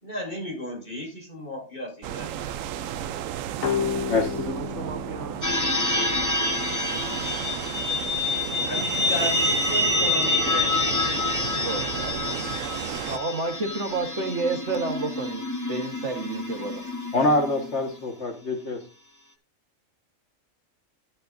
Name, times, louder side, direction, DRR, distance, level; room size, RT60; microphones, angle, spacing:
voice 1, 0.0-2.5 8.6-10.7, equal, 35° left, -1 dB, 4.4 m, -34 dB
sound 1, 2.0-13.2, right 10 dB, 75° right, 1.0 m, -34 dB
sound 2, 3.6-7.1, left 6 dB, 80° left, 1.4 m, -32 dB
voice 2, 4.5-5.4 11.6-12.4 13.1-16.8, right 3 dB, 60° right, 5 dB, 1.7 m, -31 dB
sound 3, 5.4-18.0, left 2 dB, 15° left, 1.3 m, -27 dB
voice 3, 17.1-18.8, left 2 dB, 60° left, 4 dB, 1.8 m, -24 dB
12.5 x 8.4 x 2.5 m, 0.33 s
omnidirectional pair, 1.4 m